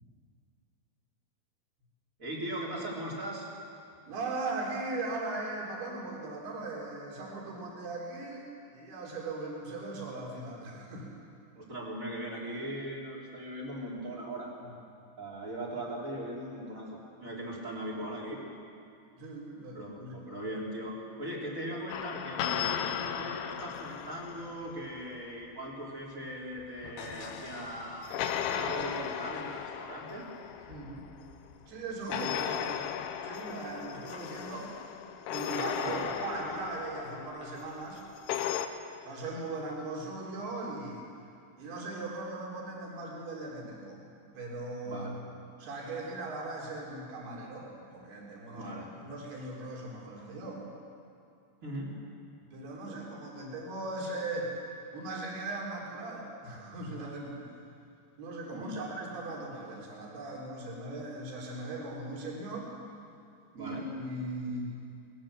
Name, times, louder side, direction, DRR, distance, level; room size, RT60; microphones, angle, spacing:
voice 1, 2.2-3.5 11.5-14.5 15.2-18.4 19.7-30.2 32.1-32.5 35.8-36.0 44.8-45.2 48.5-48.9 51.6-51.9 58.5-58.8 63.5-63.9, right 1 dB, 20° right, -3 dB, 2.8 m, -39 dB
voice 2, 4.0-11.1 14.6-14.7 19.2-20.3 30.7-31.1 31.7-32.8 33.2-34.7 35.3-38.0 39.0-41.1 41.6-44.0 44.3-45.1 45.6-50.7 52.5-54.6 54.9-57.5 58.2-62.7 63.6-64.7, right 2 dB, 55° right, -2 dB, 5.6 m, -39 dB
sound 1, 21.9-25.1 26.6-31.5 32.1-38.7, left 9 dB, 80° left, 3.2 m, -36 dB
20.5 x 20.5 x 7.6 m, 2.5 s
omnidirectional pair, 5.6 m